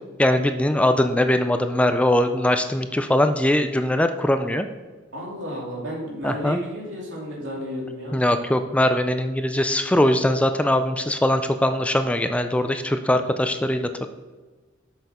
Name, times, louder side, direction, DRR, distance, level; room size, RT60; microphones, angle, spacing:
voice 1, 0.2-4.7 6.2-6.6 8.1-13.9, left 1 dB, 5° left, 8 dB, 0.3 m, -21 dB
voice 2, 5.1-8.2, equal, 80° right, -3 dB, 2.8 m, -32 dB
7.9 x 6.6 x 4.2 m, 1.3 s
head